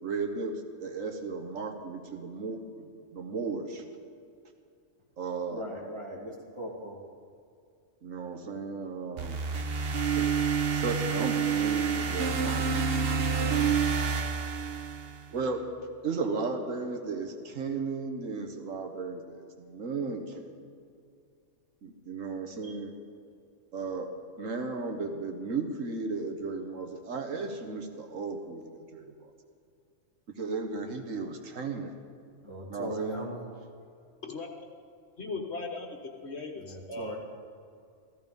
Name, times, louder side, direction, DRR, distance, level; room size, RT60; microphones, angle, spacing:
voice 1, 0.0-3.8 5.2-5.6 8.0-9.4 10.2-10.3 10.7-14.0 15.3-15.7 16.0-20.5 21.8-22.9 23.7-24.1 24.4-29.1 30.4-31.9 32.7-33.3, right 4 dB, 80° right, 5 dB, 1.6 m, -35 dB
voice 2, 5.5-7.0 32.4-33.4 33.7-33.8 36.5-37.2, equal, 20° right, -4 dB, 2.9 m, -39 dB
sound 1, 9.2-15.3, right 6 dB, 50° right, 1.1 m, -28 dB
voice 3, 35.2-35.9 36.2-37.1, left 3 dB, 55° left, 2 dB, 1.6 m, -37 dB
15.0 x 14.5 x 5.3 m, 2.4 s
omnidirectional pair, 1.3 m